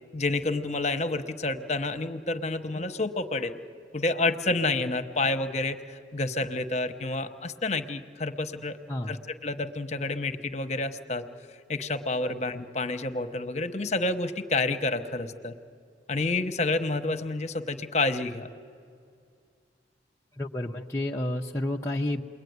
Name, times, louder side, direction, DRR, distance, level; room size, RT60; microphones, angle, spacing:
voice 1, 0.1-3.5 3.9-8.8 9.1-11.2 11.7-15.5 16.1-18.5, left 2 dB, 40° left, 9 dB, 1.0 m, -29 dB
voice 2, 8.9-9.2 12.2-12.3 20.4-22.2, left 1 dB, 15° left, -2 dB, 0.7 m, -30 dB
29.0 x 21.5 x 9.5 m, 2.3 s
head